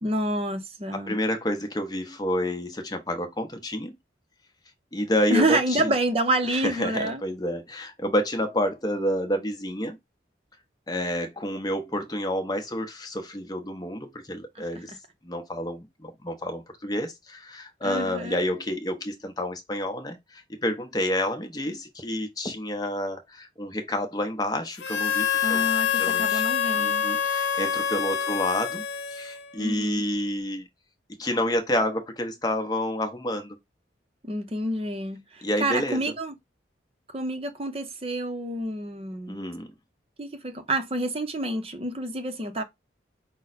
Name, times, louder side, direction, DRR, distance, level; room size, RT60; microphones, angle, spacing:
voice 1, 0.0-1.2 5.3-7.2 14.6-14.7 17.8-18.4 25.4-27.0 29.6-30.0 34.2-36.3 37.1-39.4 40.2-42.6, right 1 dB, 30° right, 0.6 m, -28 dB
voice 2, 0.9-3.9 4.9-5.9 6.5-10.0 10.9-14.9 15.2-25.7 25.9-26.4 26.7-28.8 29.1-30.7 31.2-33.6 35.4-36.0 39.3-39.7, left 1 dB, 20° left, 0.7 m, -29 dB
Harmonica, 24.8-29.6, left 8 dB, 75° left, 0.6 m, -26 dB
5.4 x 2.1 x 4.0 m
head